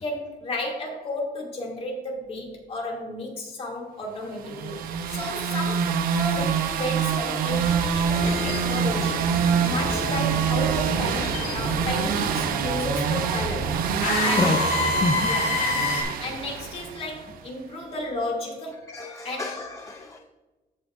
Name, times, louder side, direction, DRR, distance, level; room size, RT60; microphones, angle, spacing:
voice 1, 0.0-4.8 5.1-13.8 14.0-14.9 15.3-15.5 16.2-18.9 19.2-19.5, left 1 dB, 40° left, -1 dB, 2.6 m, -33 dB
sound 1, 4.4-17.3, right 7 dB, 80° right, 0.8 m, -26 dB
sound 2, 8.1-16.0, left 2 dB, 90° left, 2.5 m, -29 dB
voice 2, 13.9-14.6 15.0-15.3 18.9-20.2, left 3 dB, 20° left, 2 dB, 0.6 m, -29 dB
15.0 x 5.8 x 2.6 m, 1.2 s
cardioid pair, 155°, 15 cm